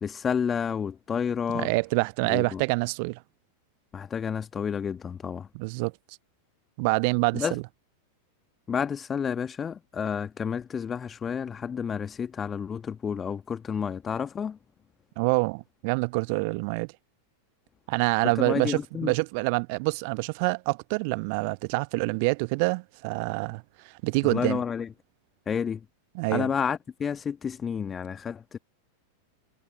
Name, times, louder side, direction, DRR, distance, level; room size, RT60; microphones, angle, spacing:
voice 1, 0.0-1.7 2.3-2.6 3.9-5.5 7.3-7.6 8.7-14.6 18.4-19.1 24.2-24.9 25.5-25.8 26.3-28.6, left 7 dB, 20° left, 1.4 m, -30 dB
voice 2, 1.5-3.2 5.5-5.9 6.8-7.6 15.2-16.9 17.9-24.6 26.1-26.5, right 32 dB, 45° right, 0.9 m, -26 dB
figure-of-eight pair, 90°, 0 cm